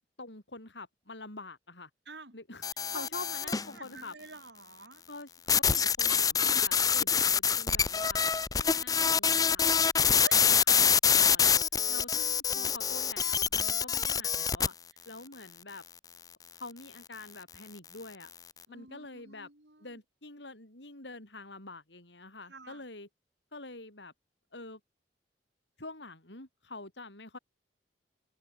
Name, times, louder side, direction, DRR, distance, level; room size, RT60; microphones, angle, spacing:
voice 1, 0.2-1.9 2.3-2.6 2.9-4.1 5.1-8.3 8.5-9.6 10.4-11.6 11.9-14.8 15.1-15.8 16.6-18.3 18.7-19.5 19.8-23.1 23.5-24.1 24.5-24.8 25.8-27.4, left 3 dB, 85° left, 7.2 m, -46 dB
sound 1, 2.6-3.7 5.5-14.7, left 7 dB, 20° left, 0.5 m, -26 dB
voice 2, 3.4-5.0 10.2-10.6 12.2-12.3 18.7-20.0 22.5-22.8, right 3 dB, 75° right, 7.1 m, -49 dB
head